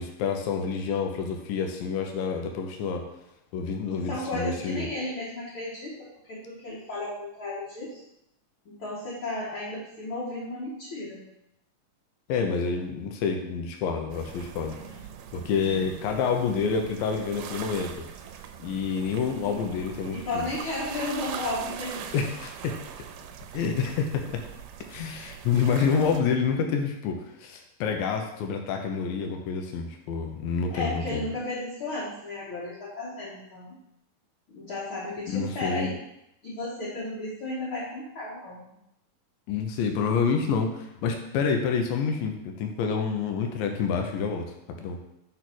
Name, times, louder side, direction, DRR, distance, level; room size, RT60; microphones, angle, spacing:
voice 1, 0.0-3.1 3.5-4.9 12.3-14.8 15.3-17.9 18.6-20.2 22.1-22.7 23.5-24.4 24.9-31.2 35.3-35.9 39.5-44.4 44.8-45.0, left 6 dB, 80° left, 3 dB, 2.5 m, -28 dB
voice 2, 4.0-8.0 8.7-11.2 20.1-22.1 30.7-33.8 34.5-35.9 36.4-38.7, left 2 dB, 45° left, -8 dB, 1.9 m, -34 dB
sound 1, 14.1-26.2, right 8 dB, 80° right, 2.0 m, -41 dB
6.4 x 4.1 x 6.1 m, 0.83 s
omnidirectional pair, 4.1 m